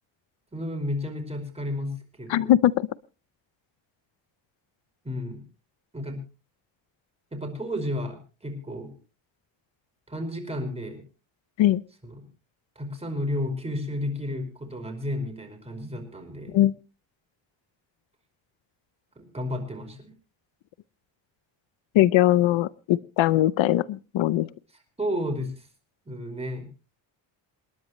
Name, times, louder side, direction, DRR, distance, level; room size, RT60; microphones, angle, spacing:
voice 1, 0.5-2.5 5.0-5.4 5.9-6.2 7.3-8.2 8.4-8.9 10.1-11.0 12.0-12.3 12.7-16.6 19.2-20.1 25.0-25.6 26.0-26.7, left 1 dB, 15° right, 3 dB, 5.0 m, -32 dB
voice 2, 2.3-2.9 11.6-11.8 16.5-16.7 21.9-24.5, left 13 dB, 85° left, 18 dB, 0.7 m, -21 dB
27.5 x 11.0 x 3.1 m, 0.34 s
cardioid pair, 120°, 45 cm